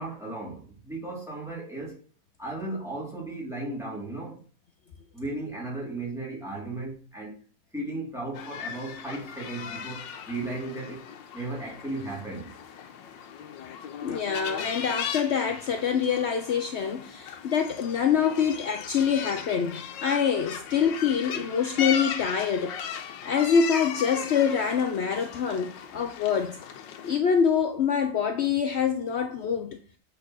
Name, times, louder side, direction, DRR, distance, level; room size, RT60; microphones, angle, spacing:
voice 1, 0.0-2.0 2.4-4.4 5.1-7.4 7.7-11.1 11.3-12.5, right 2 dB, ahead, 3.6 m, -35 dB
sound 1, 8.3-27.2, left 8 dB, 85° left, 1.6 m, -37 dB
voice 2, 14.0-22.8 23.2-26.6 27.0-29.8, left 7 dB, 60° left, 0.7 m, -25 dB
8.3 x 4.8 x 6.4 m
omnidirectional pair, 1.9 m